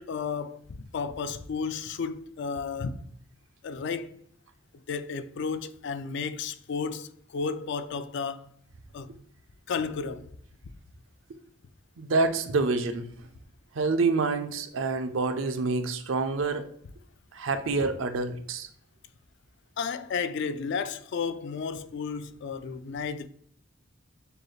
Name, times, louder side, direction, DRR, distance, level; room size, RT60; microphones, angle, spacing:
voice 1, 0.0-3.0 3.6-4.2 4.9-8.5 8.9-9.1 9.7-10.3 19.8-23.3, left 5 dB, 60° left, 0.4 m, -33 dB
voice 2, 12.0-13.1 13.7-16.7 17.3-18.7, right 3 dB, 75° right, 0.5 m, -27 dB
6.6 x 2.3 x 3.1 m
head